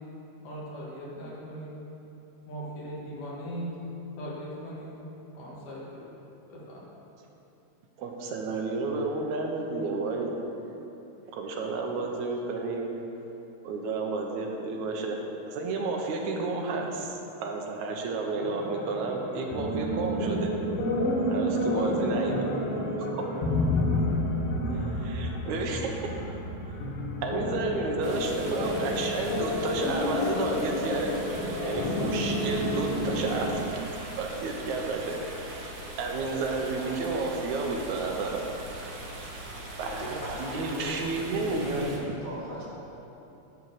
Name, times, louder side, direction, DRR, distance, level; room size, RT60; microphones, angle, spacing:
voice 1, 0.4-1.7 2.5-3.7 4.2-4.9 5.3-6.0 6.5-6.8, equal, 80° left, -5 dB, 3.4 m, -39 dB
voice 2, 8.0-10.3 11.3-12.9 13.6-15.2 15.5-20.5 21.3-22.5 23.1-23.2 24.7-25.9 27.2-31.3 31.6-33.6 34.2-35.2 36.0-38.4 39.8-41.9, right 3 dB, 75° right, 1 dB, 2.3 m, -31 dB
sound 1, 18.4-33.7, left 1 dB, 65° left, 1.7 m, -30 dB
sound 2, 28.0-42.0, right 1 dB, 55° right, 1.1 m, -41 dB
voice 3, 39.8-42.7, equal, 30° left, -8 dB, 1.4 m, -38 dB
11.0 x 4.5 x 7.6 m, 3.0 s
omnidirectional pair, 3.4 m